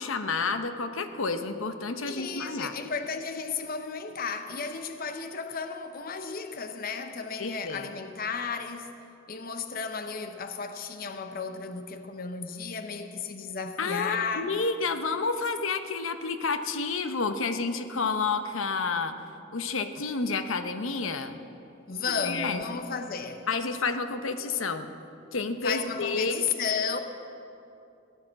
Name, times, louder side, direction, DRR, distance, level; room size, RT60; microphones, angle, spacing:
voice 1, 0.0-2.7 7.4-7.9 13.8-19.1 19.5-21.4 22.2-22.6 23.5-24.9 25.3-26.4, left 4 dB, 80° left, 9 dB, 0.9 m, -30 dB
voice 2, 2.1-9.0 9.3-14.5 21.9-23.5 25.6-27.0, left 5 dB, 45° left, 8 dB, 0.7 m, -33 dB
17.0 x 11.0 x 7.5 m, 2.7 s
head